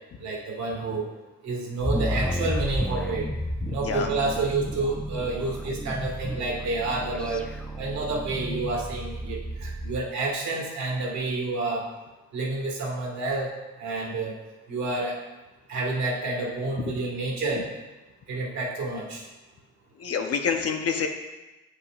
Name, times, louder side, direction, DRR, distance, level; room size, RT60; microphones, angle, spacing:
voice 1, 0.2-1.1 1.4-3.3 3.7-7.4 7.8-11.8 12.3-13.5 13.8-14.3 14.7-15.2 15.7-17.7 18.3-19.2, right 3 dB, 65° right, -2 dB, 1.7 m, -29 dB
sound 1, 1.8-10.0, equal, 5° left, 0.4 m, -32 dB
voice 2, 20.0-21.1, left 6 dB, 50° left, 4 dB, 0.8 m, -27 dB
8.2 x 5.5 x 2.4 m, 1.1 s
cardioid pair, 90°, 30 cm